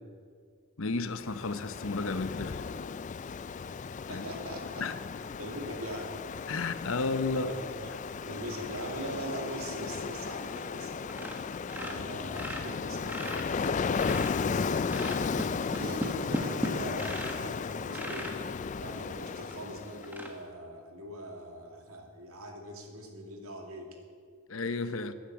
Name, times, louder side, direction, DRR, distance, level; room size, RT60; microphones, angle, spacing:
voice 1, 0.8-2.6 4.1-4.2 4.8-4.9 6.5-7.5 24.5-25.1, left 3 dB, 65° left, 0.9 m, -32 dB
Ocean, 1.1-20.2, left 5 dB, 35° left, 0.3 m, -35 dB
voice 2, 4.1-4.9 5.4-6.2 7.4-7.9 8.3-11.3 11.7-18.3 18.8-23.9, right 1 dB, 75° right, 2.5 m, -42 dB
sound 1, 10.6-10.8 11.1-11.4 11.7-14.5 14.9-17.5 17.9-18.4 19.0-19.1 19.5-19.6 20.0-20.3, equal, 10° right, 1.4 m, -37 dB
13.5 x 10.5 x 8.7 m
head